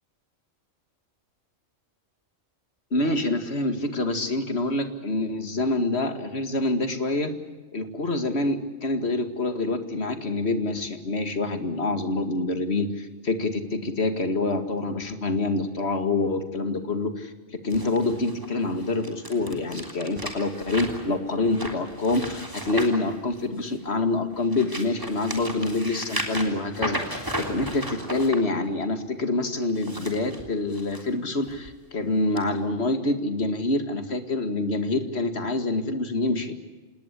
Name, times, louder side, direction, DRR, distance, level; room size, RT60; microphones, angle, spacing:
voice 1, 2.9-7.3 7.7-17.3 17.6-36.5, left 2 dB, 55° left, 8 dB, 2.4 m, -26 dB
sound 1, 17.7-23.8 24.3-28.4 29.6-31.0 31.5-31.7 32.4-32.5, equal, 15° right, 3.4 m, -35 dB
27.0 x 20.0 x 8.4 m, 1.3 s
omnidirectional pair, 1.3 m